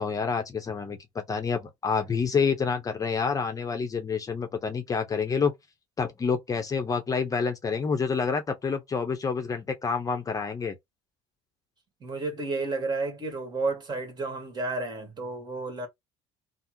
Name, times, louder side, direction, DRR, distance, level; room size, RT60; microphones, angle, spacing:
voice 1, 0.0-5.5 6.0-10.7, left 5 dB, 30° left, 0.7 m, -28 dB
voice 2, 12.0-15.9, right 3 dB, 35° right, 1.6 m, -31 dB
3.3 x 2.1 x 3.0 m
supercardioid pair, 95°, 13 cm